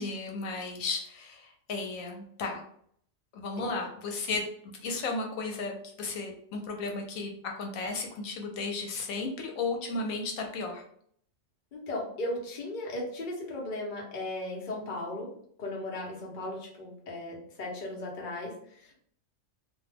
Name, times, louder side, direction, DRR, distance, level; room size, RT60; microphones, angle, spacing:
voice 1, 0.0-2.6 3.3-10.8, left 3 dB, 85° left, 2 dB, 1.0 m, -34 dB
voice 2, 11.7-15.3 15.6-18.9, left 1 dB, 45° left, -2 dB, 0.8 m, -36 dB
2.4 x 2.2 x 3.2 m, 0.64 s
omnidirectional pair, 1.4 m